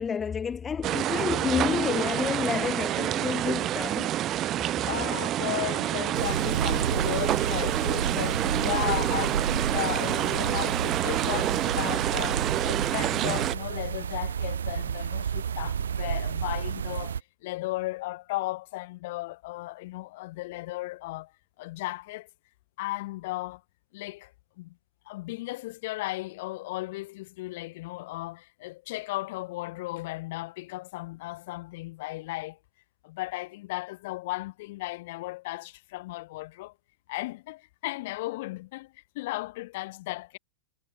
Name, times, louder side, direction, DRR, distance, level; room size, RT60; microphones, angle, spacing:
voice 1, 0.0-4.1, left 6 dB, 20° left, 0.4 m, -29 dB
sound 1, 0.8-13.5, right 13 dB, 35° right, 0.7 m, -28 dB
voice 2, 4.8-21.3 21.6-22.3 22.8-23.6 23.9-24.8 25.1-32.6 33.0-36.7 37.1-40.4, left 19 dB, 55° left, 3.1 m, -35 dB
sound 2, 6.1-17.2, right 7 dB, 80° right, 2.1 m, -31 dB
hypercardioid pair, 110°, 0 cm